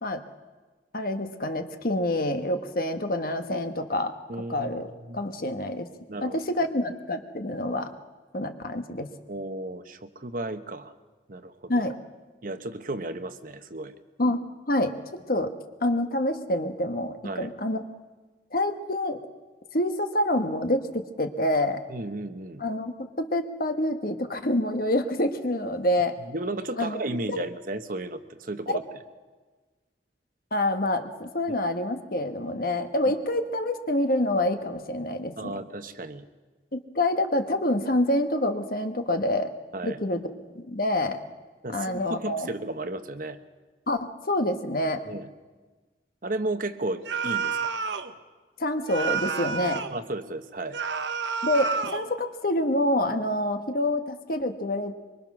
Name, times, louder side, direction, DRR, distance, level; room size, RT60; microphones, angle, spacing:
voice 1, 0.9-4.1 4.5-5.9 6.2-7.9 8.3-9.1 11.7-12.0 14.2-14.4 14.7-15.5 15.8-17.8 18.5-19.2 19.7-21.8 22.6-26.1 26.8-27.0 27.3-27.4 28.7-28.8 30.5-35.6 36.7-39.5 39.8-41.2 41.7-42.5 43.9-45.0 48.6-49.8 51.4-54.9, left 1 dB, 55° left, 7 dB, 1.3 m, -27 dB
voice 2, 4.3-5.2 6.1-6.4 9.3-10.9 11.3-11.8 12.4-13.9 17.2-17.5 21.9-22.6 26.3-28.8 35.4-36.2 39.7-40.0 41.6-43.4 45.1-45.3 46.2-47.7 49.9-50.8, right 2 dB, 50° right, 9 dB, 1.1 m, -34 dB
sound 1, 47.0-48.1 48.9-50.0 50.7-52.1, right 5 dB, 85° right, 1.1 m, -29 dB
24.0 x 24.0 x 6.2 m, 1.3 s
head